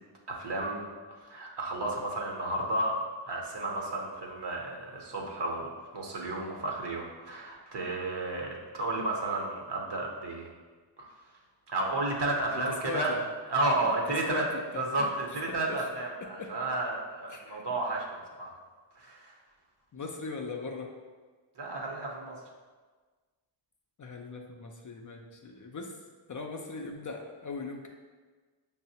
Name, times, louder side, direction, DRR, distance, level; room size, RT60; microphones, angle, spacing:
voice 1, 0.3-3.0 3.3-10.5 11.0-11.1 11.7-13.2 13.5-14.5 14.8-18.5 19.0-19.4 21.6-22.4, right 2 dB, 55° right, -1 dB, 0.8 m, -32 dB
voice 2, 12.8-13.2 14.3-14.5 14.7-15.1 15.5-15.8 16.4-16.5 17.3-17.6 19.9-20.9 24.0-26.0 26.3-27.9, left 4 dB, 40° left, 2 dB, 0.4 m, -39 dB
5.5 x 2.0 x 2.7 m, 1.4 s
cardioid pair, 50°, 49 cm